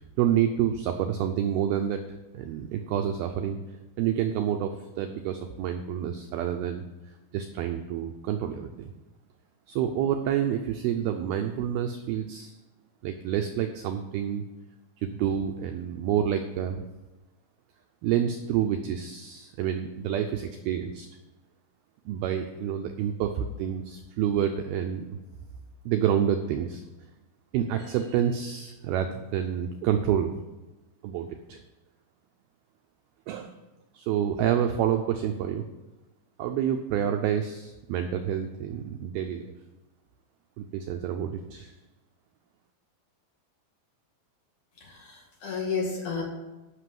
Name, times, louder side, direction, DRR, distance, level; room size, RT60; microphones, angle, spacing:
voice 1, 0.0-2.0 2.3-3.6 4.0-6.8 7.3-8.9 9.7-12.5 13.0-14.4 15.0-16.8 18.0-21.1 22.1-25.2 25.9-26.8 27.5-30.3 31.0-31.6 33.3-33.6 33.9-35.6 36.4-39.5 40.6-41.7, right 9 dB, 85° right, 5 dB, 2.2 m, -28 dB
voice 2, 44.8-46.2, left 5 dB, 50° left, -2 dB, 3.0 m, -32 dB
11.5 x 6.0 x 7.7 m, 1.1 s
omnidirectional pair, 5.2 m